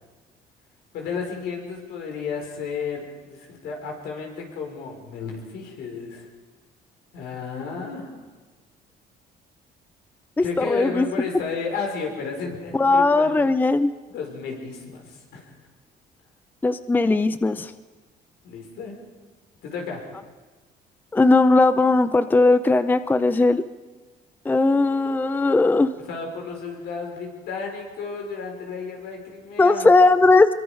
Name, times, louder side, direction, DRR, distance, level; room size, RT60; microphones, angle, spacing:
voice 1, 0.9-6.3 7.1-8.1 10.4-13.5 14.1-15.5 18.4-19.0 19.6-20.0 25.9-29.9, left 5 dB, 75° left, 1 dB, 5.4 m, -33 dB
voice 2, 10.4-11.1 12.7-13.9 16.6-17.7 21.1-23.6 24.5-25.9 29.6-30.5, left 3 dB, 10° left, 13 dB, 0.5 m, -18 dB
23.5 x 22.5 x 5.2 m, 1.3 s
cardioid pair, 110°, 17 cm